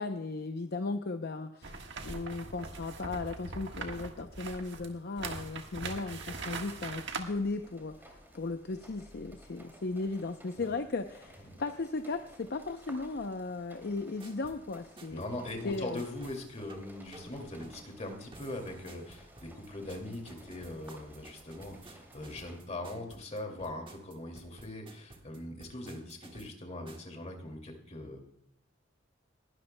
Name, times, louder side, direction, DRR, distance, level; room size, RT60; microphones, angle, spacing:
voice 1, 0.0-1.7 2.0-15.2 15.6-16.0, left 3 dB, 55° left, 7 dB, 0.6 m, -36 dB
sound 1, 1.6-7.2, right 4 dB, 65° right, 1.4 m, -41 dB
sound 2, 7.0-22.6, right 1 dB, 10° right, 2.6 m, -56 dB
sound 3, 14.2-27.1, right 2 dB, 25° right, 1.6 m, -54 dB
voice 2, 15.1-28.2, left 1 dB, 35° left, 3 dB, 2.4 m, -41 dB
20.5 x 12.5 x 2.2 m, 0.76 s
head